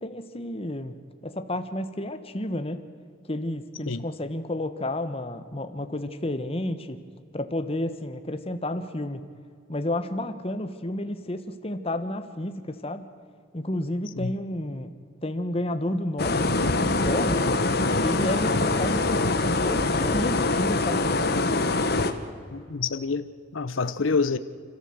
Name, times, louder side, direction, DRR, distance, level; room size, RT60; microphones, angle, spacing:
voice 1, 0.0-2.8 3.3-7.0 7.3-9.3 9.7-13.1 13.5-14.9 15.2-17.5 18.0-21.0, left 1 dB, 30° left, 1.3 m, -31 dB
sound 1, 16.2-22.1, left 2 dB, 50° left, 1.3 m, -24 dB
voice 2, 22.5-23.3 23.5-24.4, left 4 dB, 75° left, 0.8 m, -27 dB
29.5 x 13.5 x 7.9 m
head